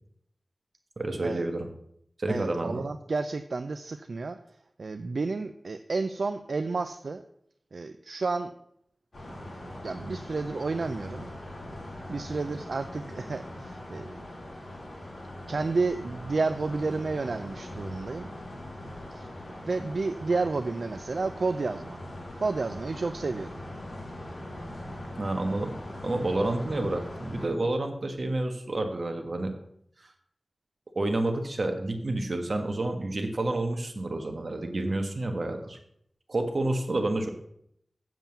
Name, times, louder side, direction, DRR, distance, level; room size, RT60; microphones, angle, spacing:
voice 1, 1.0-1.7 2.2-2.8 25.2-25.7 26.0-29.5 30.9-35.8 36.3-37.3, right 2 dB, 60° right, 5 dB, 1.5 m, -29 dB
voice 2, 2.3-4.4 4.8-7.2 7.7-8.5 9.8-11.3 12.1-14.2 15.5-18.3 19.1-19.3 19.6-22.0 22.4-23.6, right 3 dB, 75° right, 9 dB, 0.4 m, -31 dB
sound 1, 9.1-27.5, left 1 dB, 60° left, 4.0 m, -41 dB
7.7 x 7.3 x 7.0 m, 0.73 s
wide cardioid pair, 70°, 0 cm